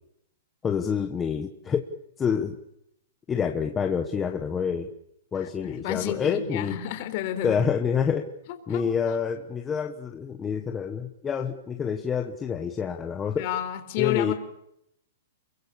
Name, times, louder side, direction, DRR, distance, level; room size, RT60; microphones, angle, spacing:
voice 1, 0.6-1.9 2.2-2.6 3.3-4.9 5.3-6.8 7.4-8.3 8.7-13.5 14.0-14.3, left 7 dB, 10° left, 4 dB, 1.3 m, -27 dB
voice 2, 5.4-7.6 8.5-9.2 13.4-14.3, left 12 dB, 35° left, 8 dB, 4.1 m, -31 dB
29.0 x 23.5 x 7.1 m, 0.77 s
hypercardioid pair, 170°, 0 cm